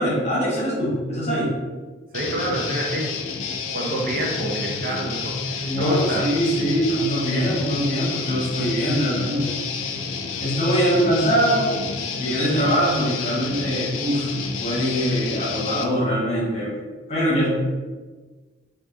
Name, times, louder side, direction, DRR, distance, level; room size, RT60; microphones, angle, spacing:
voice 1, 0.0-1.5 5.6-9.6 10.4-14.3 14.6-16.7 17.1-17.5, equal, 35° left, -6 dB, 1.0 m, -23 dB
Guitar, 2.1-15.8, left 4 dB, 85° left, 0.3 m, -29 dB
voice 2, 2.1-3.1 3.7-6.3, right 1 dB, 50° right, -1 dB, 0.5 m, -27 dB
3.5 x 2.3 x 2.5 m, 1.4 s
head